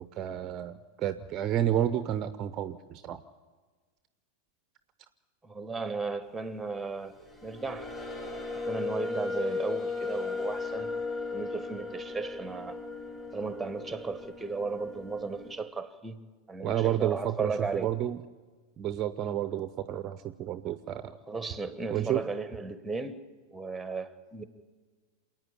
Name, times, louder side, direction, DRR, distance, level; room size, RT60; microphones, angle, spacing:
voice 1, 0.0-3.2 16.6-18.2 18.8-21.2 21.9-22.2, right 11 dB, 30° right, 0.7 m, -30 dB
voice 2, 5.4-7.9 8.7-10.9 11.3-12.8 13.3-16.2 16.5-17.9 21.3-23.2 23.5-24.4, right 4 dB, 5° right, 1.2 m, -35 dB
sound 1, 7.1-15.5, left 4 dB, 15° left, 3.4 m, -36 dB
28.0 x 9.3 x 10.0 m
figure-of-eight pair, 90°, 0 cm